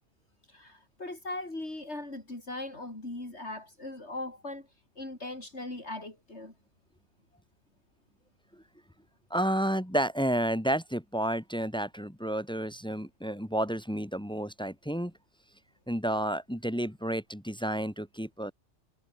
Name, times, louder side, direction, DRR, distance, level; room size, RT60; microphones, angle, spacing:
voice 1, 0.5-4.7 5.0-6.5, left 2 dB, 65° left, 5.9 m, -39 dB
voice 2, 9.3-15.1 15.9-18.5, right 1 dB, 5° left, 1.7 m, -31 dB
omnidirectional pair, 1.2 m